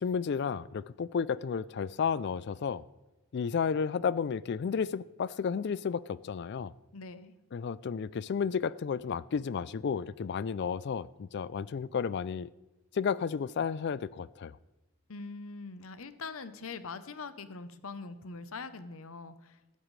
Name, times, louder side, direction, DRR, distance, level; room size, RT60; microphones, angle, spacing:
voice 1, 0.0-2.8 3.3-6.7 7.5-12.5 12.9-14.6, left 6 dB, 50° left, 0.3 m, -32 dB
voice 2, 6.9-7.4 15.1-19.6, left 4 dB, 70° left, 0.8 m, -43 dB
16.5 x 12.5 x 3.2 m
head